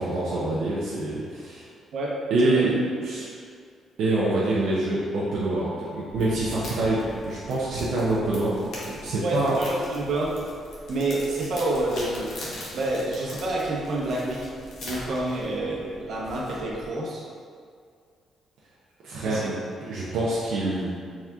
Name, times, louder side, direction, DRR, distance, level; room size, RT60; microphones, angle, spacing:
voice 1, 0.0-1.7 2.3-2.8 3.0-3.3 4.0-8.5 8.9-9.5 19.0-19.5 19.8-20.9, right 2 dB, 85° right, -7 dB, 0.6 m, -26 dB
sound 1, 5.5-7.3 7.8-8.2 8.5-9.4, left 1 dB, 35° right, 0.5 m, -45 dB
sound 2, 6.1-16.9, left 1 dB, 75° left, 0.9 m, -41 dB
voice 2, 9.2-10.4 10.9-12.4 12.7-14.4 14.8-17.2 19.2-19.5, right 2 dB, 65° right, -4 dB, 0.9 m, -28 dB
4.1 x 3.5 x 2.4 m, 2.1 s
cardioid pair, 90°, 0 cm